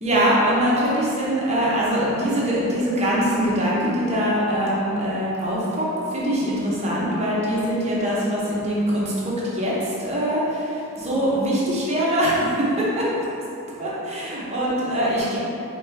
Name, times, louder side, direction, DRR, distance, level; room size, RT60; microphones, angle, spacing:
voice 1, 0.0-9.1 9.4-13.1 13.8-15.4, equal, 30° right, -6 dB, 0.9 m, -23 dB
5.0 x 2.8 x 3.4 m, 2.9 s
head